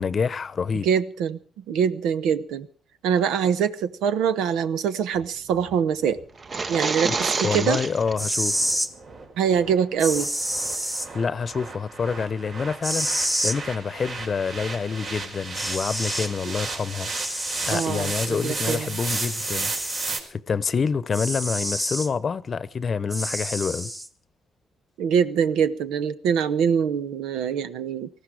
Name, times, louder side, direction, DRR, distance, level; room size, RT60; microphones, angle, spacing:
voice 1, 0.0-0.9 7.1-7.2 7.4-8.7 11.1-17.1 17.6-19.7 20.3-23.9, left 5 dB, 40° left, 0.8 m, -27 dB
voice 2, 0.8-1.4 1.7-2.7 3.0-6.2 6.7-7.8 9.4-10.3 17.7-18.9 25.0-28.1, right 7 dB, 90° right, 0.9 m, -24 dB
sound 1, 5.1-20.2, right 3 dB, 60° right, 4.8 m, -35 dB
sound 2, 6.4-8.2, right 4 dB, 40° right, 0.9 m, -27 dB
sound 3, 8.2-8.9 10.0-11.1 12.8-13.6 15.1-15.2 15.5-16.3 17.1-17.9 19.1-20.2 21.1-22.1 23.1-24.1, equal, 10° right, 1.4 m, -28 dB
19.0 x 15.0 x 4.9 m
cardioid pair, 90°, 0 cm